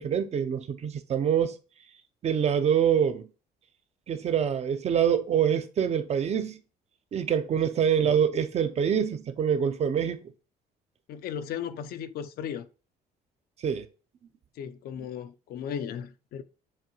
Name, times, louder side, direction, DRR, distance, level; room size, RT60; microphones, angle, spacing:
voice 1, 0.0-1.6 2.2-3.3 4.1-6.6 7.1-10.2 13.6-13.9, right 8 dB, 40° right, 0.5 m, -25 dB
voice 2, 11.1-12.7 14.6-16.4, left 8 dB, 65° left, 0.5 m, -36 dB
7.1 x 2.6 x 2.9 m
cardioid pair, 110°, 17 cm